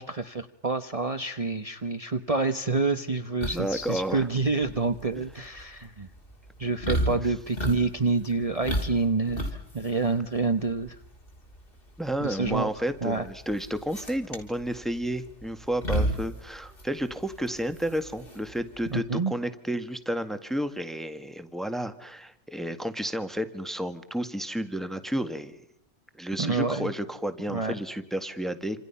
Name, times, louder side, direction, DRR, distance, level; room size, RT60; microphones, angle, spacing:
voice 1, 0.0-6.1 6.6-11.0 12.2-12.7 13.0-13.3 18.9-19.3 26.4-26.9 27.5-27.7, right 3 dB, 30° right, 8 dB, 1.2 m, -28 dB
sound 1, 3.4-19.0, equal, 45° left, 4.2 m, -34 dB
voice 2, 3.5-4.3 5.1-5.2 6.9-7.2 12.0-25.6 26.2-28.8, right 1 dB, ahead, 9 dB, 1.7 m, -31 dB
28.0 x 27.5 x 5.7 m, 0.78 s
omnidirectional pair, 1.3 m